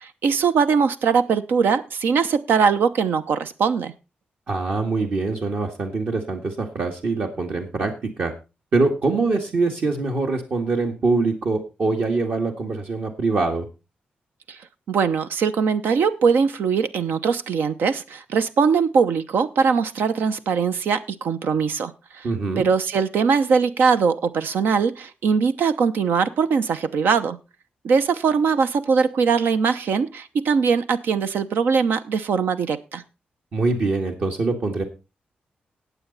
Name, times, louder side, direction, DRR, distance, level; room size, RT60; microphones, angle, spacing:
voice 1, 0.0-3.9 14.5-14.6 14.9-21.9 22.2-22.3 22.6-27.4 27.8-33.0, right 5 dB, 85° right, 11 dB, 0.8 m, -21 dB
voice 2, 4.5-8.3 8.7-13.7 22.2-22.7 33.5-34.8, right 3 dB, 55° right, 2 dB, 1.9 m, -24 dB
18.5 x 7.1 x 4.1 m, 0.29 s
wide cardioid pair, 120°, 3 cm